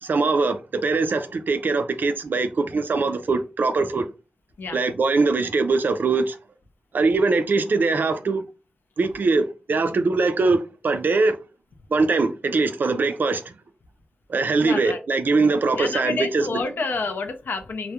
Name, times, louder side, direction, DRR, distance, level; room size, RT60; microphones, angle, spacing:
voice 1, 0.0-4.1 4.7-6.4 6.9-8.4 9.0-11.4 11.9-13.5 14.3-16.6, right 3 dB, 65° right, 0.4 m, -22 dB
voice 2, 14.6-15.0 15.8-17.9, left 4 dB, 75° left, 0.4 m, -29 dB
2.3 x 2.0 x 2.8 m
wide cardioid pair, 90°, 4 cm